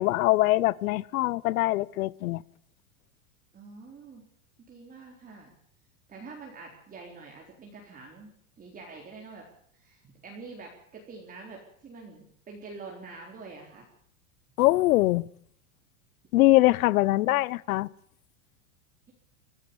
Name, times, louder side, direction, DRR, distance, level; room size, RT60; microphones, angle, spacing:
voice 1, 0.0-2.4 14.6-15.2 16.3-17.9, left 18 dB, 70° left, 0.9 m, -23 dB
voice 2, 3.5-4.2 4.7-5.5 6.1-9.5 9.7-13.9 17.1-17.4, right 4 dB, 20° right, 4.0 m, -46 dB
25.0 x 15.5 x 7.1 m
supercardioid pair, 145°, 44 cm